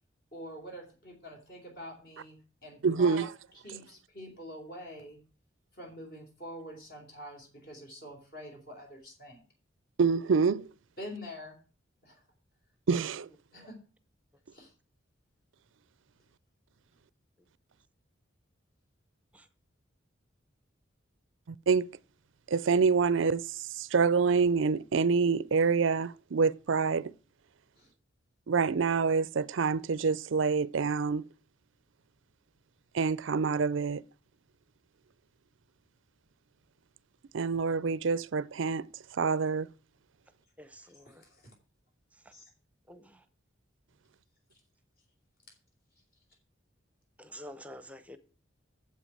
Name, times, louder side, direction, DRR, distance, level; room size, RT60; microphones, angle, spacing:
voice 1, 0.3-3.3 3.6-5.2 5.7-9.4 11.0-11.6 12.0-12.2 13.5-13.8 14.5-14.7 27.8-27.9 40.8-41.5 42.3-42.5, equal, 50° left, 3.7 m, -46 dB
voice 2, 2.8-3.2 10.0-10.7 12.9-13.3 21.5-21.9 22.5-27.1 28.5-31.3 32.9-34.0 37.3-38.9 39.1-39.7, right 5 dB, 75° right, 0.5 m, -27 dB
voice 3, 40.6-41.2 42.1-42.3 42.9-43.3 47.2-48.2, equal, 5° right, 0.8 m, -49 dB
8.3 x 7.8 x 9.0 m
head